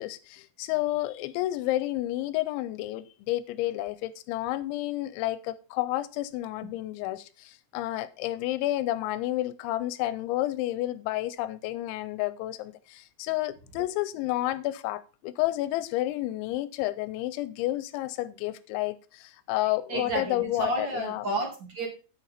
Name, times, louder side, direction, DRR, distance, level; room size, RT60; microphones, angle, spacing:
voice 1, 0.0-21.3, left 15 dB, 85° left, 2.9 m, -30 dB
voice 2, 19.9-21.9, right 2 dB, 45° right, 1.6 m, -31 dB
9.2 x 8.4 x 4.1 m
omnidirectional pair, 5.4 m